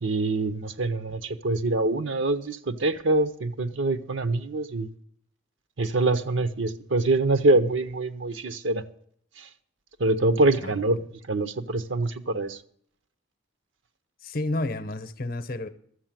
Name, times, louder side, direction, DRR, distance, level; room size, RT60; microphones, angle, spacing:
voice 1, 0.0-4.9 5.8-8.8 9.4-9.5 10.0-11.0 11.3-12.6, right 2 dB, 65° right, 0.8 m, -25 dB
voice 2, 14.2-15.7, left 2 dB, 45° left, 0.8 m, -30 dB
13.0 x 7.6 x 7.5 m
head